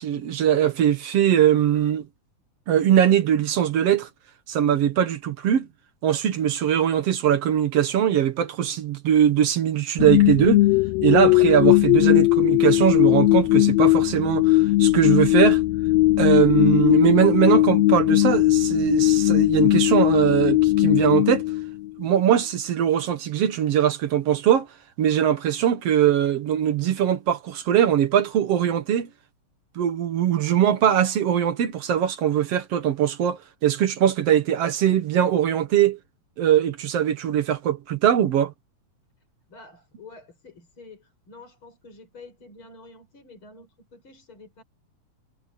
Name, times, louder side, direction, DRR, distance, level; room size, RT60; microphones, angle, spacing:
voice 1, 0.0-2.0 2.7-4.1 4.5-5.7 6.0-10.6 11.0-15.6 16.2-21.4 22.0-24.7 25.0-29.1 29.8-36.0 36.4-38.5, right 10 dB, 60° right, 2.1 m, -21 dB
sound 1, 10.0-22.1, left 18 dB, 80° left, 1.5 m, -19 dB
voice 2, 39.5-44.6, left 3 dB, 40° left, 6.1 m, -48 dB
omnidirectional pair, 3.4 m